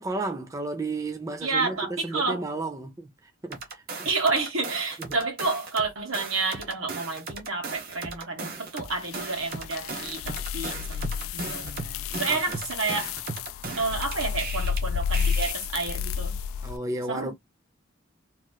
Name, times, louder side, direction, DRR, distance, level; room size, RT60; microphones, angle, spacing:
voice 1, 0.0-3.1 3.4-4.1 5.0-5.2 12.3-12.6 16.6-17.3, right 2 dB, 15° right, 0.4 m, -33 dB
voice 2, 1.4-2.4 4.0-13.1 13.8-16.4 17.1-17.3, right 3 dB, 75° right, 1.5 m, -30 dB
sound 1, 3.5-5.9 6.1-14.8 15.1-15.5, right 4 dB, 45° right, 1.1 m, -37 dB
sound 2, 8.9-16.8, left 7 dB, 75° left, 0.3 m, -31 dB
3.0 x 2.9 x 2.2 m
head